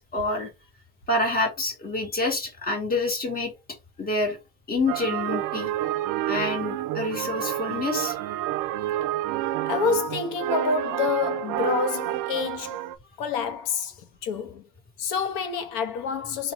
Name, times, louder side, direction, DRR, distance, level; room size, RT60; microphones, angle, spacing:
voice 1, 0.1-0.5 1.1-3.5 4.0-4.4 4.7-5.7 6.3-8.1, left 2 dB, 20° left, 1.6 m, -27 dB
sound 1, 4.9-13.0, right 13 dB, 45° right, 0.5 m, -29 dB
voice 2, 9.7-12.8 13.2-13.9 14.2-14.6 15.0-16.5, left 6 dB, 70° left, 1.3 m, -28 dB
4.1 x 2.7 x 4.4 m
cardioid pair, 165°, 43 cm